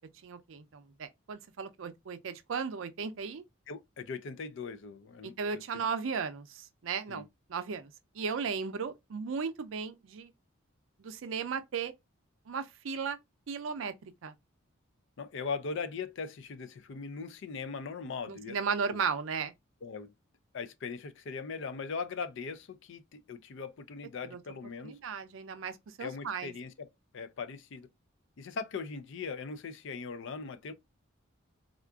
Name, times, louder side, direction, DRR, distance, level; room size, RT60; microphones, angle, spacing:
voice 1, 0.2-3.4 5.2-10.3 11.0-11.9 12.5-13.2 13.5-13.9 14.2-14.3 18.3-19.5 24.3-24.4 24.8-26.5, right 5 dB, 70° right, 0.5 m, -36 dB
voice 2, 3.7-5.9 7.1-7.3 15.2-18.6 18.9-19.0 19.8-20.1 20.5-25.0 26.0-26.9 27.1-27.9 28.4-30.7, left 5 dB, 60° left, 0.4 m, -40 dB
3.6 x 2.4 x 2.3 m
head